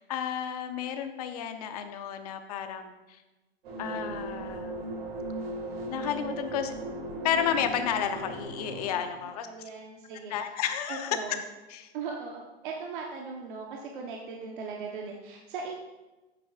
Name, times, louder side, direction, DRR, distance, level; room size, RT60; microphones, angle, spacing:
voice 1, 0.0-3.2 3.8-4.9 5.9-6.7 7.2-9.5 10.3-11.2 11.7-11.9, left 9 dB, 35° left, 8 dB, 0.7 m, -32 dB
sound 1, 3.6-8.9, right 2 dB, 65° right, 2.9 m, -37 dB
voice 2, 9.2-10.3 10.9-11.4 11.9-15.7, right 5 dB, 50° right, 0 dB, 0.9 m, -39 dB
11.0 x 8.5 x 2.4 m, 1.1 s
hypercardioid pair, 160°, 32 cm